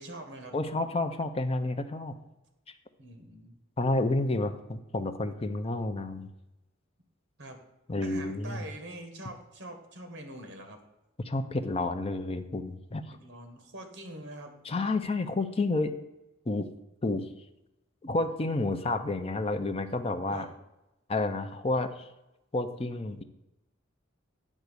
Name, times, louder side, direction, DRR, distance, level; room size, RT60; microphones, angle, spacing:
voice 1, 0.0-0.6 3.0-3.6 7.4-7.6 8.0-10.8 13.1-14.6 20.3-20.5, right 1 dB, 55° right, 5 dB, 1.5 m, -44 dB
voice 2, 0.5-2.1 3.8-6.3 7.9-8.6 11.2-13.1 14.6-15.9 16.5-16.7 17.0-17.3 18.0-20.5 21.1-22.1 22.5-23.2, left 2 dB, 30° left, 8 dB, 0.6 m, -30 dB
9.3 x 3.6 x 6.7 m, 0.94 s
head